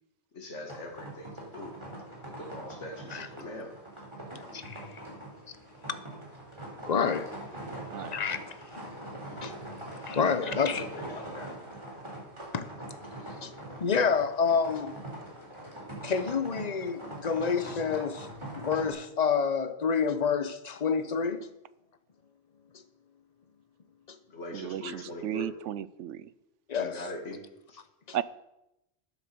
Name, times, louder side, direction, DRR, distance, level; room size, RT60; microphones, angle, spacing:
voice 1, 0.3-1.8 2.2-3.8 10.1-11.5 24.3-25.5 26.8-27.4 27.7-27.8, left 1 dB, 85° left, 2.2 m, -42 dB
sound 1, 0.7-18.9, right 1 dB, 25° right, 3.8 m, -43 dB
voice 2, 4.5-4.9 6.9-7.4 8.1-8.4 9.4-9.5 9.9-10.8 12.5-12.9 13.2-13.5 13.8-14.9 16.0-18.3 18.5-21.5 24.1-24.2 26.7-27.0, left 6 dB, 40° left, 0.9 m, -28 dB
voice 3, 24.5-26.3 28.1-28.2, right 10 dB, 85° right, 0.9 m, -34 dB
12.0 x 9.6 x 6.8 m
omnidirectional pair, 1.2 m